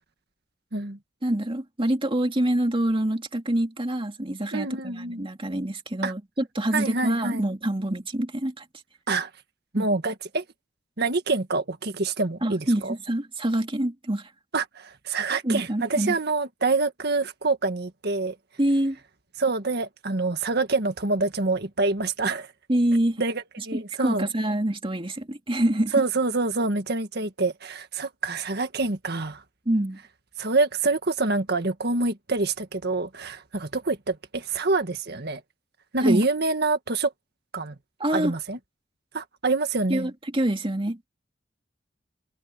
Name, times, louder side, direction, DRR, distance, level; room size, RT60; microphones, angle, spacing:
voice 1, 1.2-8.6 9.7-9.9 12.4-14.3 15.4-16.2 18.6-19.0 22.7-23.2 23.7-25.9 29.7-30.0 36.0-36.3 38.0-38.3 39.9-41.0, right 1 dB, 30° right, 2.5 m, -26 dB
voice 2, 4.5-5.2 6.0-6.1 6.7-7.5 9.1-9.3 9.7-10.4 11.0-12.9 14.5-18.4 19.4-22.5 23.2-24.3 25.9-29.4 30.4-35.4 35.9-37.1 37.5-37.8 38.1-38.6 39.1-40.1, right 3 dB, 60° right, 1.8 m, -26 dB
head